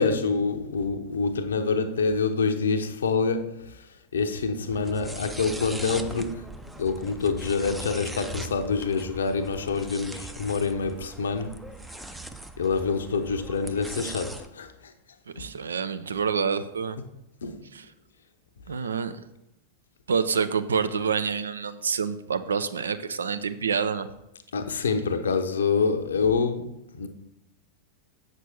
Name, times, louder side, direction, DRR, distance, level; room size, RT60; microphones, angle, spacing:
voice 1, 0.0-3.5 4.1-6.4 6.8-11.7 12.6-14.9 15.4-15.5 17.4-17.6 24.5-27.1, left 4 dB, 65° left, 0.7 m, -26 dB
sound 1, 4.7-14.5, right 2 dB, 5° right, 0.5 m, -40 dB
voice 2, 15.4-17.0 17.7-17.8 18.7-19.1 20.1-24.1, right 6 dB, 70° right, 0.5 m, -27 dB
8.0 x 6.2 x 4.1 m
figure-of-eight pair, 90°, 0 cm